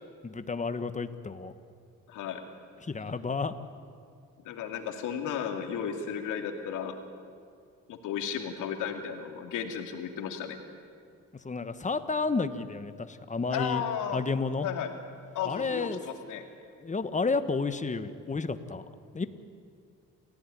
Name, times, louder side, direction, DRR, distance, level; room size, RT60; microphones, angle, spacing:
voice 1, 0.2-1.5 2.8-3.5 11.4-13.8 14.1-14.7 15.4-16.0 16.8-18.8 19.1-19.3, left 4 dB, 25° left, 11 dB, 1.5 m, -31 dB
voice 2, 2.1-2.4 4.4-6.9 7.9-10.6 13.5-14.2 14.6-14.9 15.3-16.4, left 8 dB, 90° left, 5 dB, 2.7 m, -34 dB
28.0 x 16.0 x 10.0 m, 2.3 s
cardioid pair, 90°, 30 cm